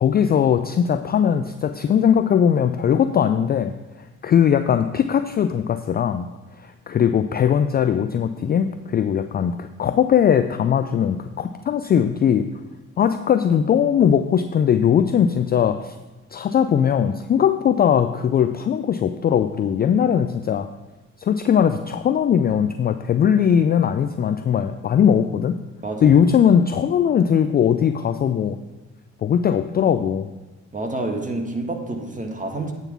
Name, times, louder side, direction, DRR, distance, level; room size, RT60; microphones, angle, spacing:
voice 1, 0.0-6.3 6.6-12.5 13.0-16.0 16.3-20.7 21.2-25.6 26.0-28.6 29.2-30.3, left 8 dB, 25° left, 10 dB, 0.4 m, -19 dB
voice 2, 25.8-26.2 30.7-32.7, right 2 dB, 20° right, 2 dB, 1.6 m, -28 dB
8.9 x 4.0 x 7.1 m, 1.1 s
hypercardioid pair, 50°, 39 cm